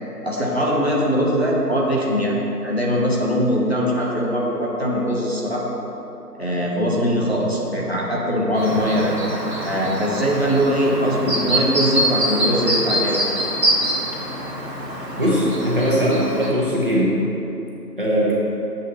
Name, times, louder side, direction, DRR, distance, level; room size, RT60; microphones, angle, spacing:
voice 1, 0.2-5.7 6.4-9.1 9.6-13.4, equal, 40° left, -4 dB, 1.2 m, -21 dB
Chirp tweet, 8.5-16.5, right 1 dB, 80° right, 2.0 m, -25 dB
voice 2, 15.2-17.1 18.0-18.3, equal, 30° right, -7 dB, 1.6 m, -20 dB
12.0 x 7.9 x 3.2 m, 2.9 s
figure-of-eight pair, 175°, 48 cm